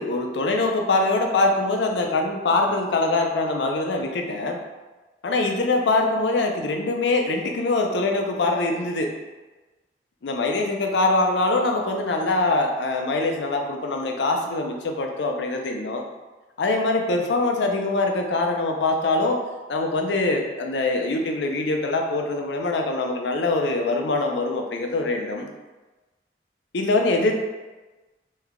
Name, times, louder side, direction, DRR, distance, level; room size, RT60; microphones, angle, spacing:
voice 1, 0.0-4.6 5.2-9.1 10.2-16.0 16.6-19.4 19.7-25.5 26.7-27.3, left 2 dB, 85° left, 2 dB, 0.5 m, -23 dB
3.2 x 2.2 x 3.6 m, 1.2 s
head